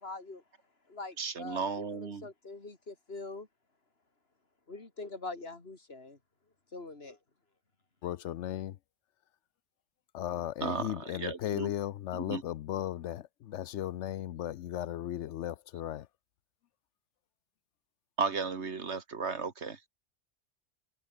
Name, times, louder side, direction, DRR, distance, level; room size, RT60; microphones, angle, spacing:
voice 1, 0.0-0.4 0.9-3.5 4.7-6.2 6.7-7.2, left 3 dB, 60° left, 3.1 m, -43 dB
voice 2, 1.2-2.3 10.6-11.7 12.1-12.4 18.2-19.8, right 5 dB, 75° right, 2.1 m, -34 dB
voice 3, 8.0-8.8 10.1-16.1, left 12 dB, 85° left, 1.0 m, -36 dB
omnidirectional pair, 1.2 m